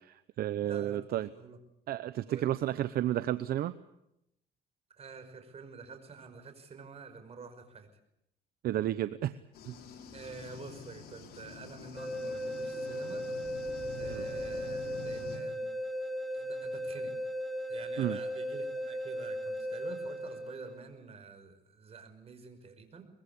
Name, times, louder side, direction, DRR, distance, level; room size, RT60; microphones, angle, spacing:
voice 1, 0.0-1.3 1.9-3.7 8.6-9.4 9.6-9.8 14.1-14.2 18.0-18.2, right 12 dB, 65° right, 13 dB, 0.9 m, -32 dB
voice 2, 0.6-1.6 2.3-2.5 5.0-7.9 10.1-13.2 14.0-15.7 16.3-17.1 17.7-23.0, right 5 dB, 35° right, 8 dB, 5.4 m, -48 dB
sound 1, 9.5-15.4, left 5 dB, 65° left, 5.1 m, -47 dB
sound 2, 12.0-20.9, equal, ahead, 4.3 m, -37 dB
24.0 x 22.0 x 8.5 m, 0.81 s
cardioid pair, 110°, 17 cm